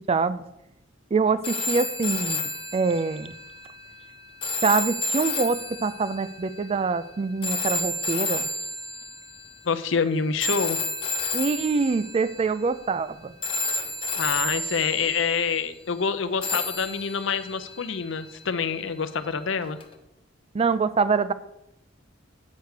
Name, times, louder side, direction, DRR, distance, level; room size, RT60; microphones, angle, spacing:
voice 1, 0.1-0.4 1.1-3.3 4.6-8.4 11.3-13.3 20.5-21.3, right 4 dB, 30° right, 15 dB, 0.3 m, -25 dB
sound 1, 1.4-9.6 10.4-13.1 13.4-15.5 16.4-18.7 19.8-19.9, left 2 dB, 25° left, 0.8 m, -31 dB
voice 2, 9.6-10.8 14.2-19.8, left 5 dB, 65° left, 10 dB, 0.6 m, -26 dB
8.5 x 4.6 x 6.5 m, 0.89 s
head